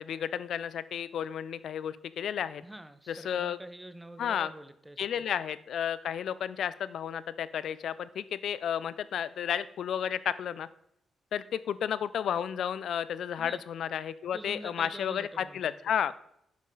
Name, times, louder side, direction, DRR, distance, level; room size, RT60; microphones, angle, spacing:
voice 1, 0.0-2.6 3.1-3.6 4.2-4.5 5.0-10.7 11.3-16.1, left 9 dB, 70° left, 16 dB, 0.4 m, -32 dB
voice 2, 2.6-5.2 13.4-13.6 14.3-15.8, right 1 dB, 10° right, 11 dB, 0.6 m, -46 dB
9.0 x 5.2 x 3.9 m, 0.75 s
cardioid pair, 90°, 0 cm